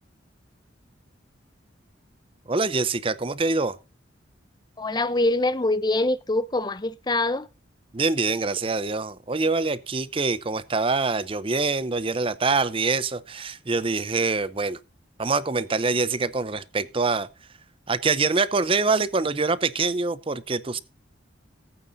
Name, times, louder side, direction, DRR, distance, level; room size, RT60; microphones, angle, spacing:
voice 1, 2.5-3.8 7.9-14.8 15.2-17.3 17.9-20.8, right 3 dB, 30° right, 0.6 m, -25 dB
voice 2, 4.8-7.5, left 2 dB, 20° left, 0.7 m, -24 dB
19.0 x 8.9 x 2.7 m
head